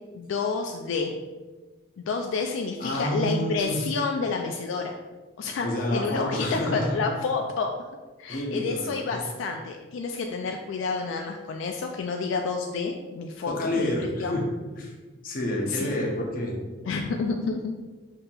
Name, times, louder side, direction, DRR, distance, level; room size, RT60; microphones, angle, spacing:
voice 1, 0.1-1.1 2.0-4.9 5.4-5.7 5.9-7.7 8.2-14.4 15.7-16.0 16.9-17.7, left 4 dB, 75° left, 3 dB, 0.3 m, -29 dB
voice 2, 2.8-3.8 5.6-7.0 8.3-9.2 13.5-14.5 14.8-14.9 15.2-16.6, left 1 dB, 45° left, 0 dB, 0.7 m, -28 dB
5.5 x 2.7 x 2.3 m, 1.3 s
head